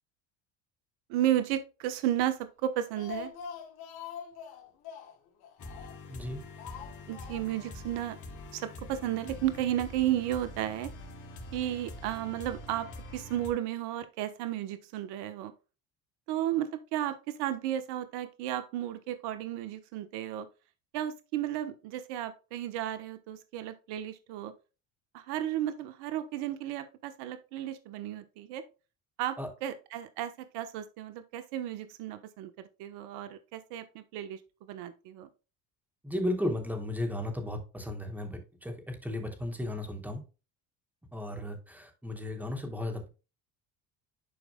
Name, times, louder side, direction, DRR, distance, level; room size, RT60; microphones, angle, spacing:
voice 1, 1.1-3.3 7.1-8.2 8.5-10.9 11.5-12.9 13.1-15.5 16.3-20.5 20.9-24.5 25.1-28.6 29.2-34.4 34.7-35.3, right 12 dB, 75° right, 10 dB, 1.2 m, -33 dB
Speech, 2.6-6.2 6.6-7.7 8.0-8.1 8.4-8.5, left 7 dB, 65° left, 2.8 m, -44 dB
sound 1, 5.6-13.5, left 2 dB, 45° left, 3.2 m, -45 dB
voice 2, 6.1-6.4 29.4-29.5 36.0-40.2 41.1-43.1, left 1 dB, 5° right, 3 dB, 3.0 m, -35 dB
12.0 x 4.9 x 2.3 m, 0.31 s
supercardioid pair, 85°, 40 cm